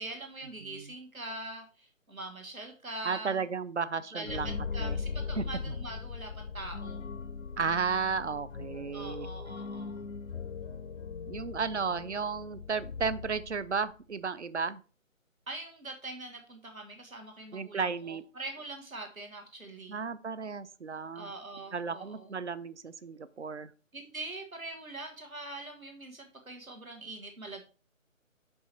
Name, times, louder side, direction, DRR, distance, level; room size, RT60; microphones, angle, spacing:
voice 1, 0.0-3.4 4.1-7.1 8.9-10.0 15.5-20.0 21.2-22.4 23.9-27.7, right 2 dB, 85° right, 3 dB, 1.8 m, -43 dB
voice 2, 3.0-4.5 4.8-5.0 5.4-5.7 7.6-9.3 11.3-14.8 17.5-18.2 19.9-21.3 21.7-23.7, right 5 dB, 60° right, 14 dB, 0.6 m, -34 dB
sound 1, 4.2-13.9, left 5 dB, 60° left, 0.6 m, -39 dB
5.7 x 5.4 x 4.5 m, 0.37 s
figure-of-eight pair, 150°, 40 cm